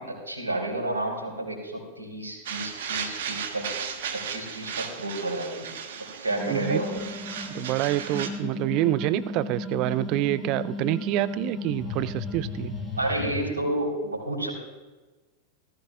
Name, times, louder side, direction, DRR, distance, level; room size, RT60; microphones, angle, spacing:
voice 1, 0.0-3.9 4.1-5.7 6.2-6.9 13.0-14.5, right 1 dB, 75° right, -2 dB, 4.1 m, -31 dB
sound 1, 2.5-8.3, right 7 dB, 60° right, 1.4 m, -35 dB
sound 2, 6.3-13.3, left 2 dB, 5° left, 5.0 m, -35 dB
voice 2, 6.5-6.8 7.5-12.7, right 15 dB, 40° right, 17 dB, 0.5 m, -27 dB
18.5 x 15.0 x 2.4 m, 1.2 s
figure-of-eight pair, 90°, 0 cm